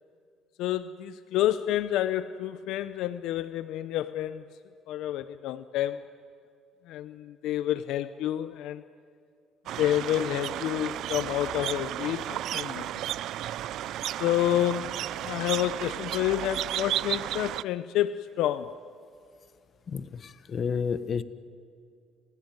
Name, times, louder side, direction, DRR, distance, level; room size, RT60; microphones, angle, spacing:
voice 1, 0.6-4.6 4.9-6.1 6.9-8.8 9.8-13.0 14.2-14.9 15.2-18.8, left 12 dB, 75° left, 13 dB, 0.7 m, -29 dB
sound 1, 9.7-17.6, right 13 dB, 70° right, 0.5 m, -33 dB
voice 2, 19.9-21.2, left 6 dB, 45° left, 13 dB, 1.2 m, -31 dB
29.5 x 15.5 x 9.3 m, 2.4 s
cardioid pair, 90°, 0 cm